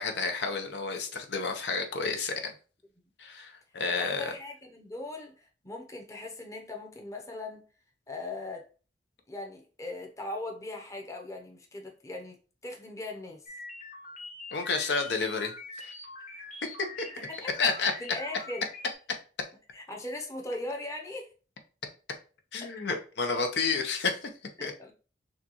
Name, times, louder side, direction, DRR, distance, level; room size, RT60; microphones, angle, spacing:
voice 1, 0.0-2.5 3.2-4.3 14.5-15.5 15.8-15.9 16.4-16.5 16.8-17.1 17.6-17.9 22.5-24.3 24.6-24.7, left 4 dB, 70° left, 0.8 m, -30 dB
voice 2, 3.9-7.6 8.1-8.7 9.3-13.4 17.3-17.7 18.0-18.7 19.7-21.3 22.6-22.7 24.6-24.9, left 2 dB, 20° left, 0.8 m, -39 dB
sound 1, 13.5-18.9, left 2 dB, 40° left, 1.1 m, -44 dB
6.4 x 2.4 x 3.0 m
head